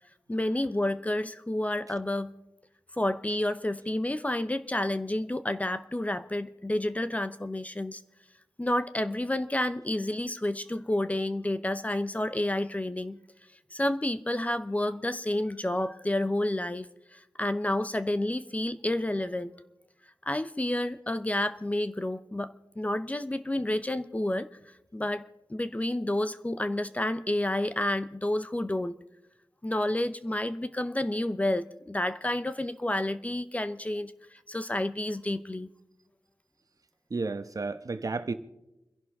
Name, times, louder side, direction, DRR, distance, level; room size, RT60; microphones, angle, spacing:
voice 1, 0.3-2.3 2.9-8.0 8.6-13.2 13.7-19.5 20.2-24.5 24.9-29.0 29.6-35.7, left 1 dB, 20° left, 0.7 m, -30 dB
voice 2, 37.1-38.3, right 3 dB, 50° right, 1.1 m, -32 dB
29.5 x 11.0 x 3.5 m
wide cardioid pair, 85°, 7 cm